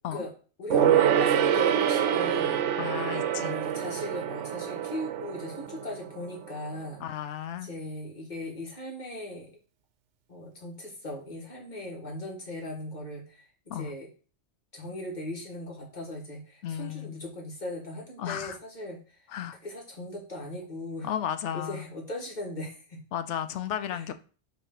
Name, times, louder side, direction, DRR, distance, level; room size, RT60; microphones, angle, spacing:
voice 1, 0.6-2.6 3.3-7.0 7.6-9.5 10.3-13.5 13.8-14.1 14.7-19.0 19.6-21.1 21.5-23.0 23.9-24.0, left 1 dB, 40° left, 1.6 m, -38 dB
Gong, 0.7-6.6 6.9-7.0, right 9 dB, 85° right, 0.9 m, -26 dB
voice 2, 2.8-3.6 7.0-7.7 13.7-13.9 16.6-17.2 18.2-18.6 19.3-19.6 21.0-21.9 23.1-24.1, left 9 dB, 80° left, 0.9 m, -34 dB
5.5 x 3.2 x 5.6 m
omnidirectional pair, 1.2 m